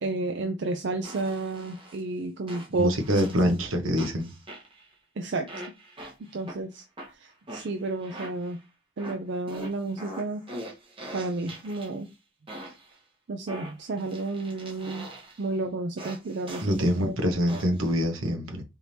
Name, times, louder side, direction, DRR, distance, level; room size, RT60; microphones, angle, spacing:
voice 1, 0.0-3.2 5.2-5.5 6.2-6.8 7.1-8.6 9.0-10.4 11.1-12.1 13.3-15.1 15.4-17.1, right 2 dB, 55° right, 0.4 m, -31 dB
sound 1, 1.0-2.0 2.5-3.6 4.0-4.9 5.5-6.6 7.0-8.6 9.0-12.1 12.5-13.0 13.5-15.5 16.0-17.0 17.5-17.9, right 1 dB, 25° right, 1.1 m, -42 dB
voice 2, 2.8-4.3 16.6-18.6, equal, 75° right, 1.0 m, -25 dB
4.6 x 3.3 x 2.7 m
head